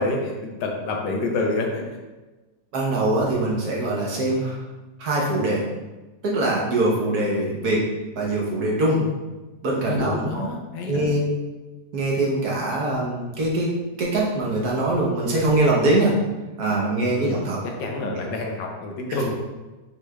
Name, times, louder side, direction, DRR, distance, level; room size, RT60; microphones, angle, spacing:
voice 1, 0.0-1.9 9.8-11.1 17.1-17.4 17.6-19.3, left 2 dB, 90° left, 1 dB, 1.4 m, -27 dB
voice 2, 2.7-4.6 5.0-5.6 6.2-7.8 8.2-9.0 9.6-10.5 10.9-11.3 11.9-13.7 14.0-16.1 16.6-17.6 18.0-18.1, right 2 dB, 65° right, -3 dB, 1.4 m, -23 dB
6.4 x 3.2 x 2.3 m, 1.2 s
omnidirectional pair, 1.9 m